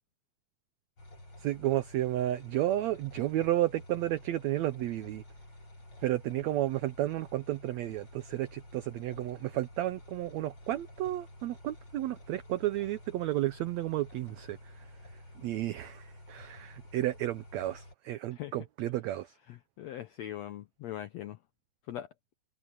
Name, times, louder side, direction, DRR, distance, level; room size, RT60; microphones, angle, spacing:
sound 1, 1.0-17.9, left 1 dB, 35° left, 6.9 m, -51 dB
voice 1, 1.4-5.2 6.0-14.8 15.4-19.3, right 14 dB, 90° right, 1.5 m, -32 dB
voice 2, 19.5-21.4 21.9-22.1, left 12 dB, 80° left, 1.5 m, -41 dB
omnidirectional pair, 4.0 m